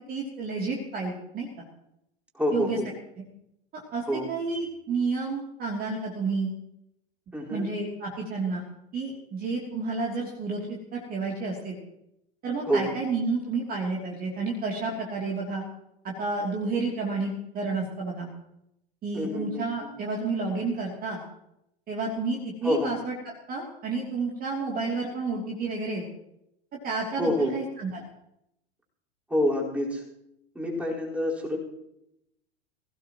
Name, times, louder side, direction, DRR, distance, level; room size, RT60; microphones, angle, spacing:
voice 1, 0.1-1.5 2.5-2.8 3.7-4.0 4.3-6.5 7.5-8.6 8.9-11.8 12.4-15.6 16.0-18.3 19.0-21.2 21.9-23.1 23.5-26.0 26.8-28.0, right 3 dB, 25° right, -2 dB, 3.0 m, -30 dB
voice 2, 2.3-2.9 4.1-4.3 7.3-7.7 12.7-12.9 19.1-19.9 22.6-22.9 27.1-27.6 29.3-30.0 30.5-31.6, equal, 5° right, -4 dB, 4.7 m, -27 dB
22.0 x 16.5 x 3.1 m, 0.80 s
figure-of-eight pair, 90°, 33 cm